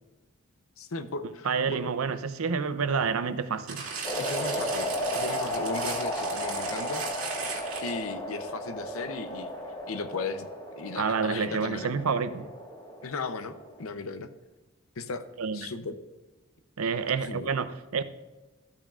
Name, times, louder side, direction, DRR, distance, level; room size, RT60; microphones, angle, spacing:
voice 1, 0.8-1.8 4.2-7.0 7.8-9.5 9.9-10.5 10.8-11.9 13.0-14.3 15.0-15.2 15.5-15.9 17.3-17.5, left 3 dB, 75° left, 0.7 m, -36 dB
voice 2, 1.4-3.8 11.0-12.5 15.4-15.7 16.8-18.0, right 5 dB, 85° right, 0.6 m, -28 dB
sound 1, 3.7-8.1 8.8-8.9, right 5 dB, 70° right, 2.3 m, -36 dB
sound 2, 4.0-13.9, equal, 20° left, 1.6 m, -34 dB
13.5 x 8.7 x 2.5 m
head